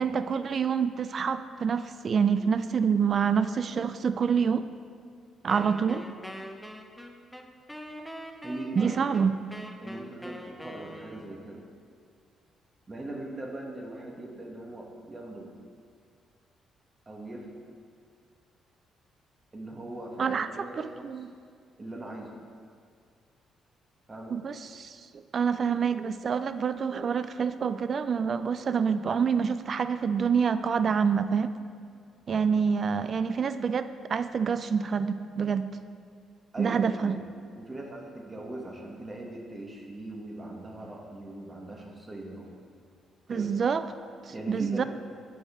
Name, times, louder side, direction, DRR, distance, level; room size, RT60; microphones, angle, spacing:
voice 1, 0.0-4.7 5.4-6.1 8.8-9.3 20.2-21.3 24.3-25.0 25.3-31.5 32.3-35.6 36.6-37.1 43.3-43.8 44.5-44.8, right 6 dB, 50° right, 12 dB, 0.3 m, -27 dB
Wind instrument woodwind instrument, 5.5-11.5, equal, ahead, 0.6 m, -43 dB
voice 2, 8.4-8.9 9.8-11.6 12.9-15.5 17.1-17.5 19.5-21.2 21.8-22.4 24.1-24.4 36.5-37.2 37.6-42.5 43.3-43.5 44.3-44.8, right 1 dB, 25° right, 0 dB, 1.1 m, -40 dB
6.6 x 5.2 x 4.7 m, 2.1 s
cardioid pair, 90°, 0 cm